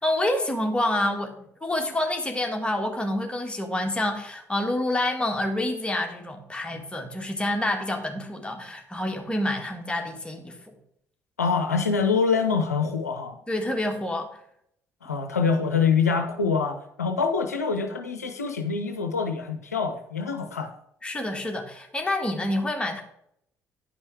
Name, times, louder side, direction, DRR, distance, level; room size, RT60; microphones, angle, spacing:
voice 1, 0.0-10.6 13.5-14.3 21.0-23.0, left 1 dB, 10° left, 2 dB, 1.8 m, -28 dB
voice 2, 11.4-13.4 15.0-20.7, left 5 dB, 85° left, 6 dB, 0.6 m, -25 dB
9.9 x 5.4 x 4.7 m, 0.71 s
figure-of-eight pair, 50°, 8 cm